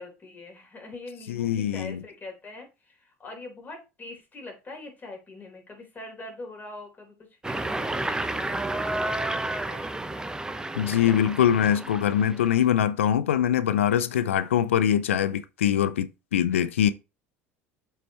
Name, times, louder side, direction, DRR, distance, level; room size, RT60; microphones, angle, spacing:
voice 1, 0.0-10.3 16.5-16.8, left 2 dB, 25° left, 3.9 m, -43 dB
voice 2, 1.3-2.0 10.8-16.9, left 10 dB, 85° left, 0.4 m, -23 dB
sound 1, 7.4-12.6, right 2 dB, 10° right, 0.9 m, -31 dB
7.6 x 5.5 x 3.1 m
hypercardioid pair, 70°, 7 cm